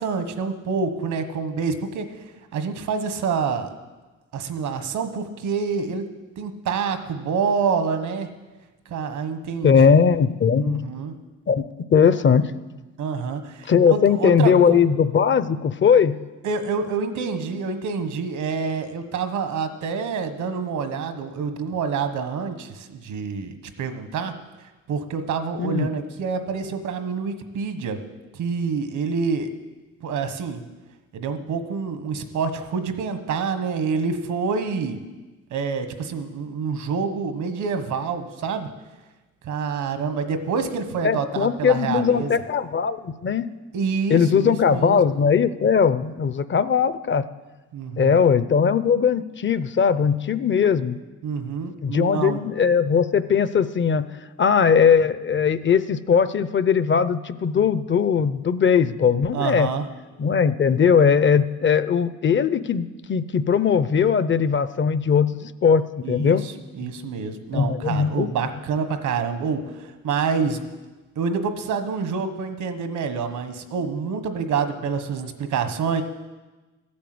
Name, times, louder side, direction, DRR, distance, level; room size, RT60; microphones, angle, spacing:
voice 1, 0.0-2.2 2.5-3.7 4.3-6.0 6.4-8.3 8.9-9.9 10.6-11.1 13.0-14.8 16.4-24.3 24.9-28.0 28.3-29.5 30.0-30.6 31.1-35.0 35.5-38.7 39.4-42.3 43.7-45.0 47.7-48.2 51.2-52.4 59.3-59.9 66.0-70.6 71.1-76.0, right 5 dB, 80° right, 8 dB, 1.5 m, -27 dB
voice 2, 9.6-10.8 11.5-12.5 13.7-16.2 25.6-25.9 41.0-43.5 44.1-47.2 48.0-51.0 51.8-54.1 54.4-59.7 60.2-66.4 66.8-66.9 67.5-68.3, left 6 dB, 40° left, 14 dB, 0.7 m, -19 dB
13.5 x 8.6 x 7.9 m, 1.2 s
cardioid pair, 90°, 30 cm